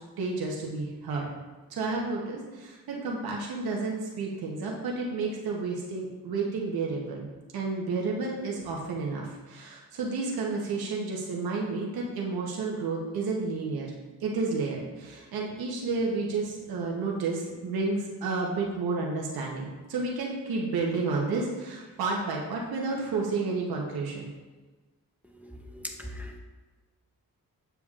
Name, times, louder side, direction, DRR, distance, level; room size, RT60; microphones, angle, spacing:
voice 1, 0.2-1.3 1.7-7.3 7.5-13.9 14.2-24.3, right 3 dB, 90° right, -2 dB, 0.9 m, -31 dB
voice 2, 25.8-26.4, left 1 dB, 5° right, 3 dB, 0.7 m, -38 dB
7.0 x 6.8 x 2.4 m, 1.3 s
cardioid pair, 65°, 36 cm